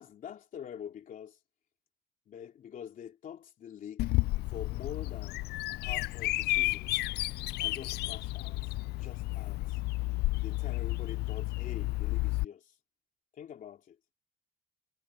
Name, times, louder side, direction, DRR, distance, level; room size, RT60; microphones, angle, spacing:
voice 1, 0.0-1.4 2.3-4.1 4.5-6.9 7.6-9.8 10.4-12.8 13.3-14.0, left 9 dB, 55° left, 3.3 m, -46 dB
Bird vocalization bird call bird song, 4.0-12.4, left 20 dB, 75° left, 0.4 m, -32 dB
cardioid pair, 110°, 17 cm